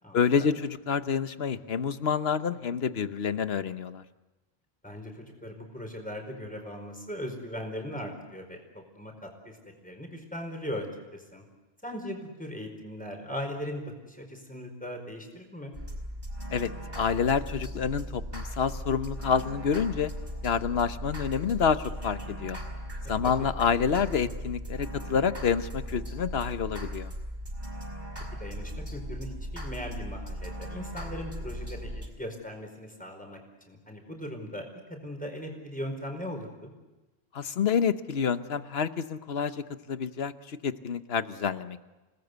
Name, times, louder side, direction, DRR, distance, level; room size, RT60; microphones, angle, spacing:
voice 1, 0.1-4.0 16.5-16.7 16.9-20.1 20.4-22.6 23.1-27.1 37.3-41.8, left 6 dB, 70° left, 12 dB, 1.2 m, -28 dB
voice 2, 4.8-9.6 9.8-10.9 11.1-11.4 11.8-15.7 23.0-23.3 28.4-33.4 33.7-36.7, equal, 10° left, 3 dB, 4.7 m, -39 dB
sound 1, 15.7-32.1, equal, 50° right, 5.1 m, -38 dB
29.0 x 19.5 x 8.1 m, 1.1 s
omnidirectional pair, 1.1 m